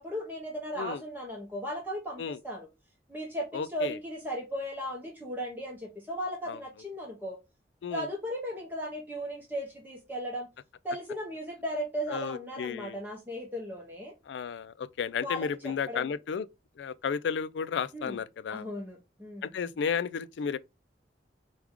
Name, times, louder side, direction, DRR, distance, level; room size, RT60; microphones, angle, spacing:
voice 1, 0.0-2.7 3.1-7.4 7.9-10.5 10.8-14.1 15.2-16.1 17.9-18.2 18.5-19.5, equal, 10° right, 0.8 m, -36 dB
voice 2, 3.5-4.0 6.5-6.6 7.8-8.1 12.1-13.0 14.3-16.5 16.8-18.7 19.4-20.6, left 6 dB, 80° left, 0.3 m, -33 dB
4.7 x 2.3 x 3.5 m
head